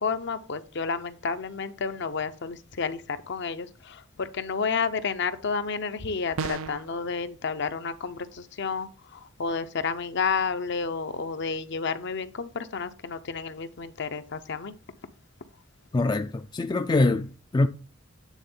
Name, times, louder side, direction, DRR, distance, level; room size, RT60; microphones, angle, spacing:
voice 1, 0.0-14.7, left 5 dB, 60° left, 0.7 m, -31 dB
sound 1, 6.4-6.9, right 5 dB, 85° right, 0.5 m, -32 dB
voice 2, 15.9-17.7, left 2 dB, 20° left, 0.3 m, -24 dB
9.2 x 3.6 x 5.5 m
head